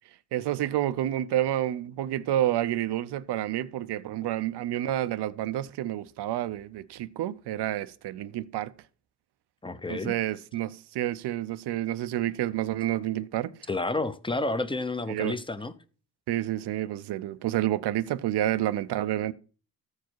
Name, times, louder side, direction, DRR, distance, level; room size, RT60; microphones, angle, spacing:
voice 1, 0.3-8.7 9.9-13.5 15.1-15.4 16.3-19.3, right 13 dB, 90° right, 0.6 m, -29 dB
voice 2, 9.6-10.1 13.7-15.7, left 2 dB, 15° left, 0.7 m, -30 dB
14.0 x 4.8 x 4.5 m
cardioid pair, 85°, 39 cm